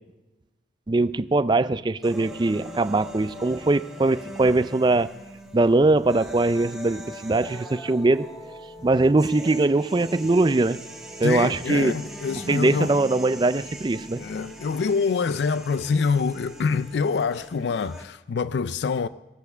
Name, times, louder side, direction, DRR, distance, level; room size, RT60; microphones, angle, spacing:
voice 1, 0.9-5.1 5.5-8.3 8.8-10.8 11.2-11.9 12.5-14.2, right 2 dB, 25° right, 0.4 m, -21 dB
sound 1, 2.0-18.0, equal, ahead, 1.5 m, -42 dB
Wind instrument woodwind instrument, 7.4-17.4, left 2 dB, 25° left, 1.3 m, -48 dB
voice 2, 11.2-13.0 14.2-19.1, left 5 dB, 65° left, 0.4 m, -25 dB
18.5 x 8.3 x 6.7 m
head